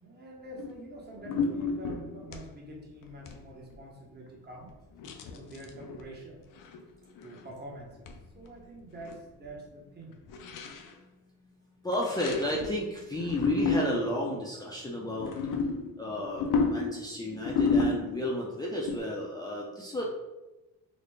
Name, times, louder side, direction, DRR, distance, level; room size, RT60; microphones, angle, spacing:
voice 1, 0.0-4.7 5.2-6.4 7.2-8.1 8.3-10.2 15.8-15.9, right 2 dB, 30° right, -2 dB, 0.9 m, -46 dB
sound 1, 0.6-0.8 1.2-2.5 3.0-3.4 3.7-3.8 5.0-6.1 6.6-6.9 7.2-7.5 8.1-8.2 8.5-8.6 8.8-9.2 9.4-9.5 10.3-10.9 11.9-12.8 13.1-14.2 15.1-18.4 18.9-19.0, left 4 dB, 70° left, 0.5 m, -31 dB
voice 2, 11.8-15.3 16.0-20.0, left 1 dB, 10° left, -4 dB, 0.5 m, -32 dB
4.1 x 2.1 x 3.2 m, 1.0 s
cardioid pair, 105°, 34 cm